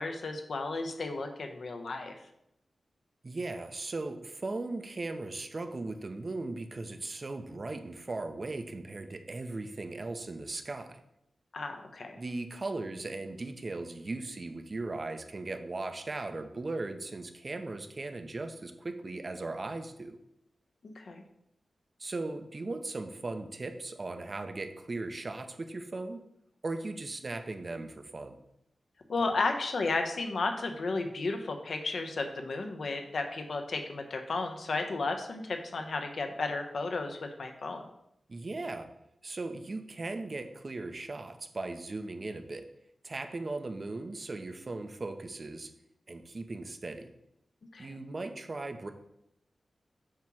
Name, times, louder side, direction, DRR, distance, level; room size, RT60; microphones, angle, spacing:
voice 1, 0.0-2.1 11.5-12.2 20.8-21.2 29.1-37.9 47.7-47.9, left 3 dB, 65° left, 5 dB, 0.8 m, -33 dB
voice 2, 3.2-11.0 12.2-20.2 22.0-26.3 26.6-28.4 38.3-38.9 39.2-42.7 43.0-45.7 46.1-47.1 47.8-48.9, right 2 dB, 35° right, 7 dB, 0.6 m, -38 dB
7.3 x 3.0 x 6.1 m, 0.80 s
wide cardioid pair, 135°, 0 cm